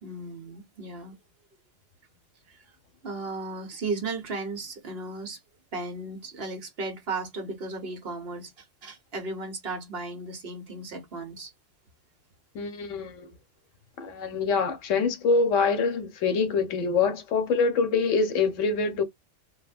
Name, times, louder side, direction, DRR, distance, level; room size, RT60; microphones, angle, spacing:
voice 1, 0.0-1.1 2.5-2.6 3.0-5.4 5.7-8.5 8.8-11.5, right 3 dB, 55° right, 1.2 m, -35 dB
voice 2, 12.5-13.4 14.0-19.0, left 4 dB, 80° left, 1.1 m, -25 dB
3.8 x 2.2 x 2.4 m
omnidirectional pair, 1.3 m